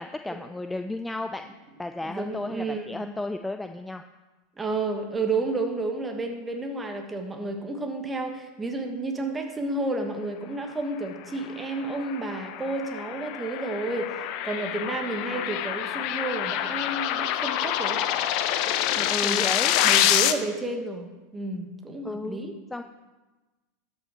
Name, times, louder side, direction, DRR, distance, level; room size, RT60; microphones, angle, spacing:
voice 1, 0.0-1.5 1.8-4.0 19.1-19.7 22.0-22.4 22.7-22.8, left 2 dB, 10° left, 7 dB, 0.4 m, -33 dB
voice 2, 2.0-3.0 4.6-18.1 18.9-22.5, right 2 dB, 15° right, 4 dB, 1.4 m, -31 dB
sound 1, 11.5-20.3, left 11 dB, 55° left, 0.6 m, -26 dB
12.5 x 5.9 x 4.5 m, 1.2 s
hypercardioid pair, 100°, 0 cm